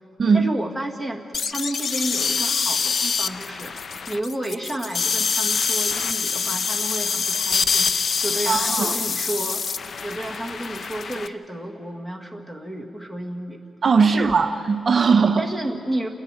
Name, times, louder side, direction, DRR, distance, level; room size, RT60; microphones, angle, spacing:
voice 1, 0.3-1.2 1.5-3.7 4.1-9.6 10.0-13.6 14.0-14.3 15.4-16.1, right 1 dB, 10° left, 3 dB, 1.7 m, -31 dB
sound 1, 1.3-11.3, left 5 dB, 50° left, 0.5 m, -25 dB
voice 2, 8.5-9.0 13.8-15.5, right 5 dB, 40° right, 6 dB, 0.6 m, -19 dB
29.0 x 10.5 x 9.3 m, 2.5 s
wide cardioid pair, 140°, 0 cm